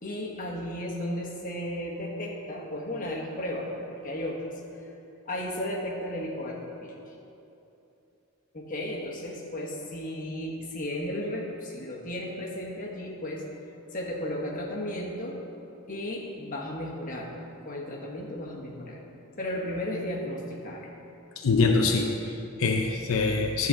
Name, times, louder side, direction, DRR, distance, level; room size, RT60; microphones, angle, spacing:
voice 1, 0.0-4.5 5.3-7.1 8.5-13.4 13.9-15.4 15.9-17.3 17.6-19.0 19.4-20.9, left 1 dB, 40° left, -3 dB, 1.3 m, -34 dB
voice 2, 21.4-23.7, left 3 dB, 80° left, 2 dB, 0.6 m, -24 dB
11.0 x 4.1 x 7.6 m, 2.9 s
head